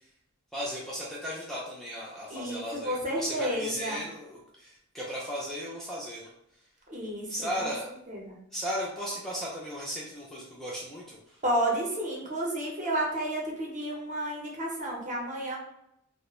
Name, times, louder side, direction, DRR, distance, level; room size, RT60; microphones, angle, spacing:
voice 1, 0.5-6.3 7.3-7.9 8.5-11.4, equal, ahead, -6 dB, 0.4 m, -36 dB
voice 2, 2.3-4.0 6.9-7.7 8.1-8.4 11.4-15.6, right 1 dB, 35° right, -3 dB, 0.7 m, -31 dB
2.3 x 2.1 x 2.9 m, 0.77 s
head